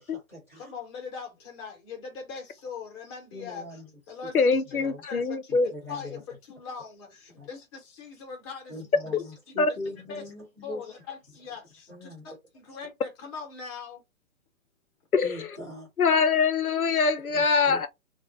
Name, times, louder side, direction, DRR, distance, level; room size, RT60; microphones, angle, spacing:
voice 1, 0.0-0.7 3.3-3.8 4.8-5.0 5.7-6.2 7.4-7.5 8.7-11.0 11.9-12.3 15.2-15.9 17.3-17.9, left 2 dB, 10° right, 0.4 m, -41 dB
voice 2, 0.6-5.5 5.9-8.9 9.5-9.6 10.1-10.3 10.6-14.0, left 5 dB, 20° left, 0.8 m, -41 dB
voice 3, 4.3-5.7 9.1-9.2 9.6-9.7 15.1-15.6 16.0-17.9, left 4 dB, 90° left, 0.6 m, -23 dB
2.4 x 2.0 x 3.7 m
figure-of-eight pair, 125°, 42 cm